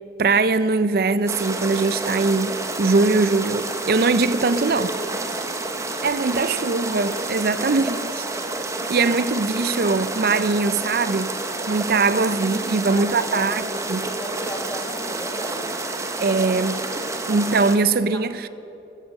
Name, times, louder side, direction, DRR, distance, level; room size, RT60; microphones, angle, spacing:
voice 1, 0.2-4.9 6.0-8.3 8.9-11.3 11.7-13.6 13.9-14.1 16.2-16.8 17.3-18.5, right 3 dB, 55° right, 0.5 m, -21 dB
sound 1, 1.3-17.8, right 2 dB, 15° right, 1.1 m, -29 dB
voice 2, 4.3-5.3 12.0-15.7 18.1-18.2, equal, 20° left, 1.4 m, -35 dB
15.5 x 14.0 x 6.5 m
head